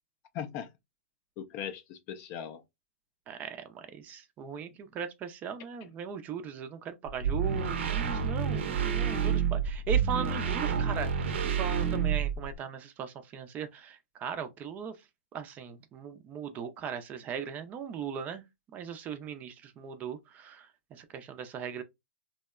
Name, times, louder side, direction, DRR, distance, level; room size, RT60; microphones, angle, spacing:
voice 1, 0.3-0.7 1.4-2.6 8.5-9.2, left 9 dB, 35° left, 0.4 m, -40 dB
voice 2, 3.3-11.1 11.4-15.0 15.3-18.4 18.7-21.8, right 7 dB, 25° right, 0.4 m, -38 dB
sound 1, 7.1-12.6, right 7 dB, 70° right, 0.6 m, -29 dB
2.7 x 2.1 x 2.3 m
hypercardioid pair, 135°, 7 cm